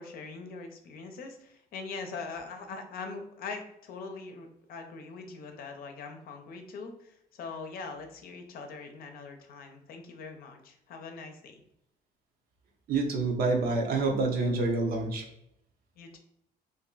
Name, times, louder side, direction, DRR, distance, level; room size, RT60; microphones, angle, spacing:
voice 1, 0.0-11.6 16.0-16.2, left 4 dB, 60° left, 5 dB, 0.6 m, -42 dB
voice 2, 12.9-15.2, right 3 dB, 60° right, 2 dB, 0.8 m, -27 dB
2.6 x 2.2 x 3.8 m, 0.78 s
cardioid pair, 110°, 17 cm